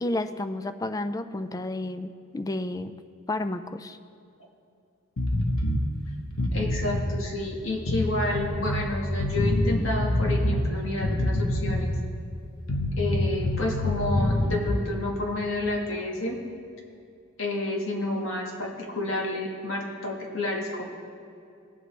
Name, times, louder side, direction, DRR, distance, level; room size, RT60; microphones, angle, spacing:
voice 1, 0.0-2.9 3.3-4.0, left 2 dB, 15° left, 10 dB, 0.3 m, -31 dB
sound 1, 5.2-5.8 6.3-7.1 7.9-8.9 9.2-10.7 11.0-12.0 12.7-14.8, left 1 dB, 90° left, 1.1 m, -26 dB
voice 2, 6.5-11.9 13.0-16.4 17.4-20.8, left 2 dB, 70° left, 0 dB, 1.7 m, -30 dB
18.0 x 7.9 x 3.3 m, 2.5 s
head